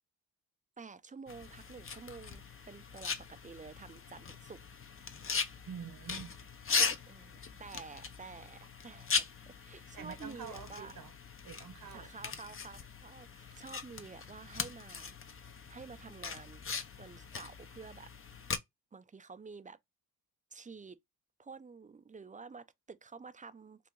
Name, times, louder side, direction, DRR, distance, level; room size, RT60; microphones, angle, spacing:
voice 1, 0.8-4.6 7.1-11.0 11.9-15.1 15.5-16.6 17.0-18.1 18.9-19.8 20.5-21.0 21.4-23.9, right 5 dB, 20° right, 0.4 m, -50 dB
sound 1, 1.3-18.6, left 5 dB, 35° left, 0.6 m, -39 dB
voice 2, 5.7-6.4 9.9-11.1 11.4-12.1 13.5-13.6, right 7 dB, 60° right, 1.0 m, -46 dB
2.8 x 2.4 x 3.8 m
cardioid pair, 55°, 39 cm